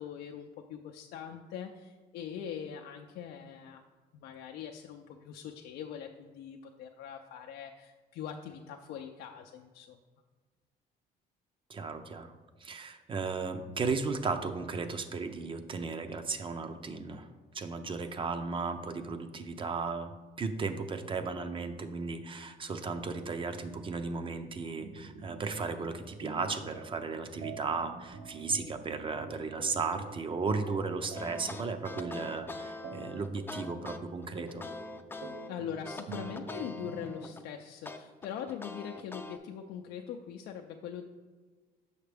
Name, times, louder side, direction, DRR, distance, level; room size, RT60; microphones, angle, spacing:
voice 1, 0.0-3.8 4.1-10.0 35.5-41.0, left 8 dB, 75° left, 3 dB, 0.5 m, -42 dB
voice 2, 11.7-12.3 12.6-17.3 17.5-34.6, right 4 dB, 30° right, 9 dB, 0.6 m, -35 dB
sound 1, 24.8-37.1, right 4 dB, 70° right, 0.8 m, -47 dB
sound 2, 31.2-35.5 35.8-37.5 37.9-39.4, left 2 dB, 15° left, 0.5 m, -43 dB
6.5 x 5.7 x 3.4 m, 1.4 s
cardioid pair, 110°, 17 cm